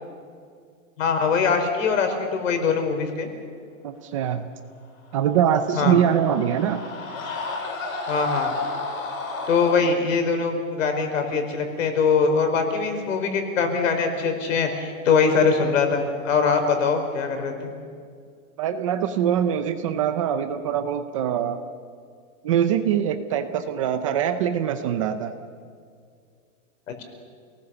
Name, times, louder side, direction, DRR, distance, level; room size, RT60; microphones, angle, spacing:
voice 1, 1.0-3.3 5.7-6.0 8.1-8.5 9.5-17.7, left 5 dB, 65° left, 6 dB, 4.8 m, -22 dB
voice 2, 3.8-4.5 5.1-6.8 18.6-21.6 22.4-25.3, right 9 dB, 25° right, 9 dB, 0.6 m, -23 dB
Screaming, 5.3-9.8, left 3 dB, 80° left, 7.5 m, -32 dB
28.5 x 19.0 x 7.1 m, 2.2 s
supercardioid pair, 170°, 42 cm